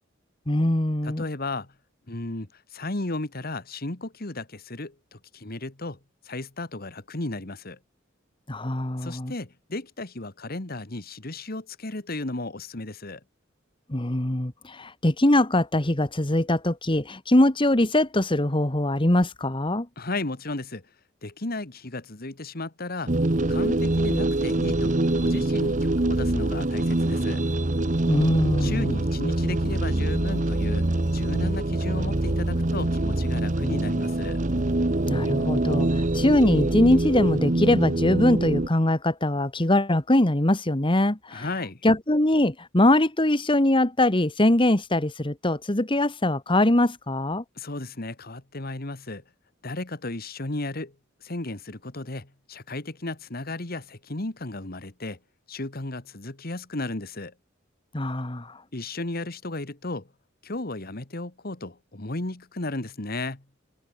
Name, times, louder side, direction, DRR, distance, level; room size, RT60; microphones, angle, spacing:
voice 1, 0.5-1.3 8.5-9.3 13.9-19.9 28.1-28.9 35.1-41.5 41.8-47.4 57.9-58.6, left 1 dB, 25° left, 1.6 m, -22 dB
voice 2, 1.0-1.7 2.1-6.0 6.3-7.8 9.0-13.2 20.0-20.8 21.2-23.1 23.5-24.9 25.2-27.4 28.6-30.9 31.1-34.4 41.3-41.8 47.6-49.2 49.6-51.0 51.2-55.2 55.5-57.3 58.7-60.1 60.4-63.4, left 2 dB, 50° left, 1.9 m, -34 dB
sound 1, 23.1-38.7, right 1 dB, 40° right, 1.1 m, -24 dB
head